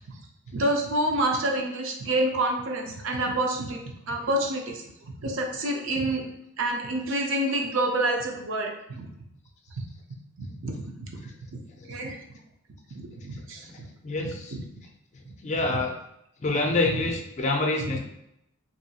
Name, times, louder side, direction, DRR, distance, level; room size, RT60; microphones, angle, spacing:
voice 1, 0.5-3.8 4.1-4.8 5.2-6.2 6.6-9.1 9.7-9.8 10.4-10.7 11.1-11.2 11.9-12.2 13.2-13.7 14.2-14.3 17.9-18.0, right 1 dB, 70° right, 2 dB, 0.6 m, -27 dB
voice 2, 13.3-14.6 15.4-16.0 16.4-18.0, left 2 dB, 35° left, 2 dB, 0.4 m, -27 dB
3.0 x 2.7 x 2.8 m, 0.80 s
head